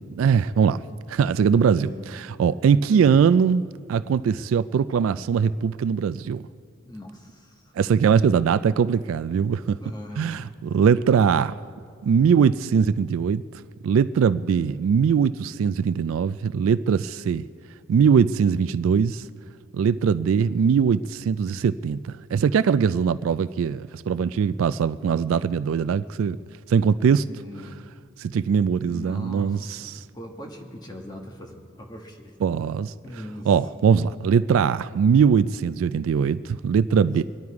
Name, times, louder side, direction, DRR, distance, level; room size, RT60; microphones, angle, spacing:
voice 1, 0.2-0.8 1.1-6.4 7.8-9.8 10.2-11.6 12.0-13.4 13.8-17.5 17.9-19.2 19.7-26.4 26.7-27.3 28.2-30.0 32.4-32.9 33.5-37.2, right 6 dB, 80° right, 0.3 m, -21 dB
voice 2, 1.7-2.1 2.7-3.2 6.8-7.7 9.8-10.5 24.5-24.7 27.3-27.8 28.9-29.9 30.1-32.4 33.0-33.5 36.9-37.2, left 1 dB, 20° left, 1.3 m, -40 dB
23.5 x 11.0 x 4.8 m
head